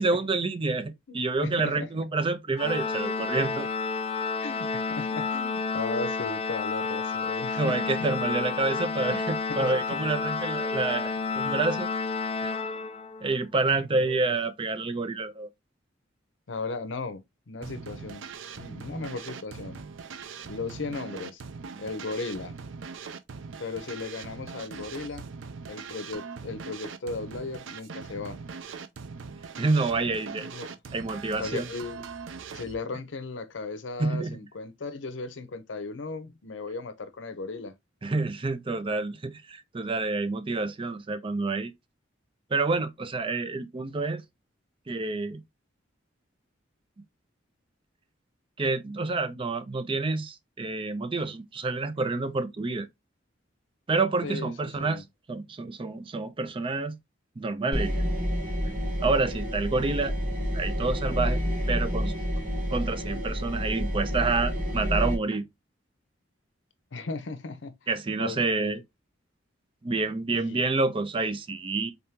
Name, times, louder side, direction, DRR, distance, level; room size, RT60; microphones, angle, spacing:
voice 1, 0.0-3.7 7.6-11.9 12.4-12.5 13.2-15.5 29.6-30.5 30.9-31.7 34.0-34.4 38.0-41.7 42.5-44.2 44.9-45.4 48.6-52.9 53.9-57.0 57.4-57.9 58.7-60.1 60.5-61.4 61.7-62.1 62.7-65.4 67.9-68.8 69.8-71.9, right 3 dB, 30° right, 0.4 m, -28 dB
voice 2, 1.1-2.1 4.4-7.8 9.5-9.7 13.7-14.3 16.5-18.3 18.6-19.8 20.5-21.4 21.8-22.6 23.6-25.3 25.7-28.4 30.5-30.8 31.4-32.0 32.5-37.8 54.2-55.0 66.9-67.8 68.2-68.8 70.3-70.6, left 3 dB, 70° left, 0.7 m, -36 dB
Organ, 2.6-13.3, left 4 dB, 30° left, 0.4 m, -30 dB
sound 1, 17.6-32.7, right 5 dB, 85° right, 0.5 m, -41 dB
sound 2, 57.7-65.1, equal, 45° right, 2.2 m, -29 dB
3.9 x 3.5 x 2.7 m
head